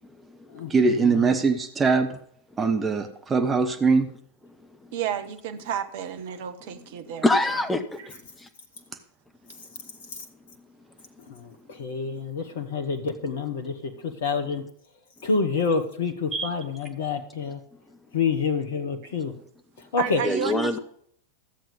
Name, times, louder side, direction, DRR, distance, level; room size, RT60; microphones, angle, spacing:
voice 1, 0.7-2.2 2.6-4.1 16.3-16.5, right 4 dB, 20° right, 6 dB, 1.0 m, -22 dB
voice 2, 4.9-7.3 8.0-8.1 20.0-20.8, right 8 dB, 50° right, 9 dB, 1.0 m, -31 dB
voice 3, 7.2-8.5 20.2-20.8, left 2 dB, 10° left, 8 dB, 1.1 m, -25 dB
voice 4, 11.3-14.6 15.2-17.6 18.1-19.3 19.9-20.2, left 5 dB, 60° left, 7 dB, 1.1 m, -27 dB
13.0 x 7.6 x 5.2 m, 0.63 s
figure-of-eight pair, 90°, 0 cm